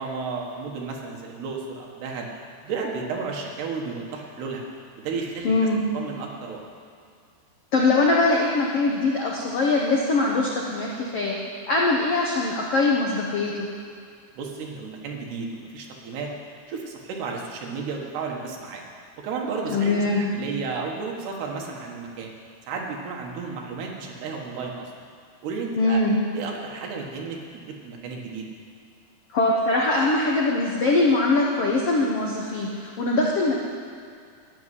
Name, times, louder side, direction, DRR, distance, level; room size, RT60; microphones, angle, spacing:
voice 1, 0.0-2.3 2.6-4.7 5.0-5.7 5.9-6.6 14.3-16.3 16.7-18.8 19.2-22.3 22.7-24.9 25.4-26.0 26.3-28.5, right 4 dB, 75° right, 0 dB, 3.6 m, -33 dB
voice 2, 5.4-5.8 7.7-11.4 11.7-13.7 19.7-20.3 25.8-26.2 29.3-33.6, left 2 dB, 85° left, -2 dB, 1.3 m, -22 dB
13.0 x 7.4 x 9.9 m, 2.3 s
omnidirectional pair, 4.8 m